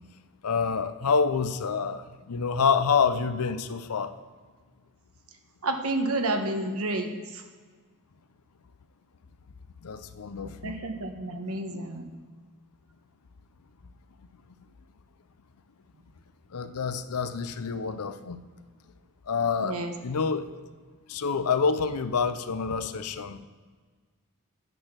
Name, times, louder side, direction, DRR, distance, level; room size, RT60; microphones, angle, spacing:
voice 1, 0.4-4.1 9.8-10.7 16.5-18.4 19.3-19.8 20.0-20.5 21.1-23.5, left 5 dB, 85° left, 11 dB, 0.6 m, -27 dB
voice 2, 5.6-7.4 10.6-12.1 19.6-19.9, right 2 dB, 75° right, 5 dB, 1.1 m, -30 dB
9.1 x 7.9 x 5.9 m, 1.5 s
head